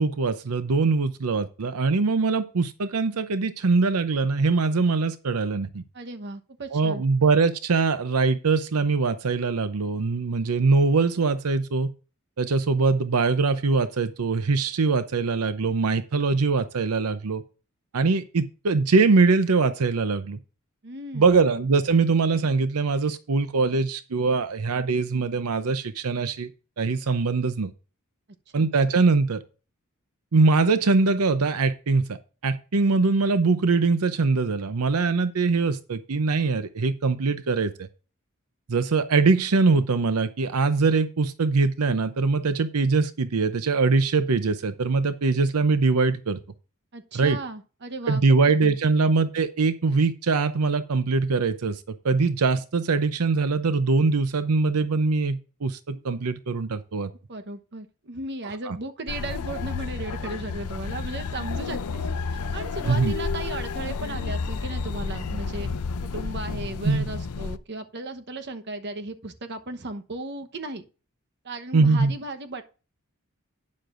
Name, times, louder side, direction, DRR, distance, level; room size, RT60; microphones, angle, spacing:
voice 1, 0.0-5.8 6.7-11.9 12.4-17.4 17.9-20.4 21.1-26.5 26.8-27.7 28.5-29.4 30.3-32.2 32.4-37.9 38.7-46.4 47.1-47.4 48.1-57.1 58.6-58.8 62.9-63.1 66.8-67.1 71.7-72.1, right 4 dB, 85° right, 0.7 m, -22 dB
voice 2, 5.9-7.0 20.8-21.4 28.5-28.7 46.9-48.8 57.3-70.8 71.4-72.6, right 2 dB, 50° right, 1.0 m, -36 dB
sound 1, 59.1-67.6, left 4 dB, 90° left, 0.6 m, -31 dB
11.5 x 9.5 x 2.5 m
head